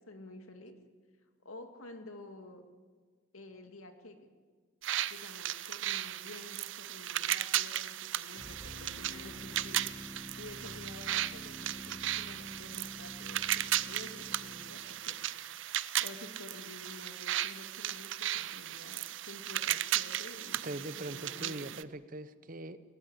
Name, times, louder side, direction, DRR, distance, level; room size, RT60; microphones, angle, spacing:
voice 1, 0.1-0.7 1.4-2.6 3.3-4.2 5.1-10.0 10.3-15.4 16.0-21.7, left 2 dB, 85° left, 6 dB, 2.4 m, -50 dB
sound 1, 4.8-21.8, right 12 dB, 65° right, 0.6 m, -36 dB
sound 2, 8.3-14.8, left 1 dB, 20° right, 4.8 m, -48 dB
voice 2, 20.6-22.8, right 1 dB, 40° right, 13 dB, 0.9 m, -41 dB
20.5 x 20.0 x 8.2 m, 1.5 s
head